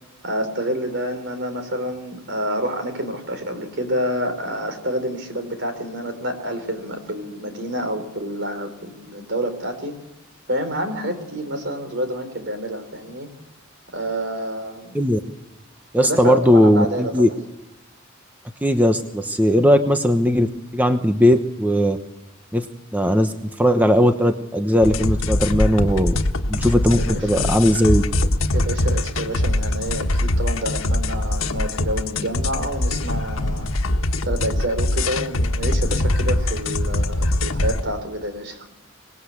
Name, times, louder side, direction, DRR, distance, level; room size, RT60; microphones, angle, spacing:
voice 1, 0.2-9.9 10.5-13.3 13.9-15.0 16.0-17.3 27.0-27.5 28.5-33.7 34.2-38.6, equal, 60° right, 8 dB, 4.2 m, -28 dB
voice 2, 15.9-17.3 18.6-22.0 22.5-22.7 22.9-26.2 26.5-28.0, equal, 10° right, 6 dB, 1.0 m, -18 dB
sound 1, 24.8-37.8, left 1 dB, 85° left, 1.5 m, -22 dB
25.5 x 19.5 x 8.5 m, 0.98 s
head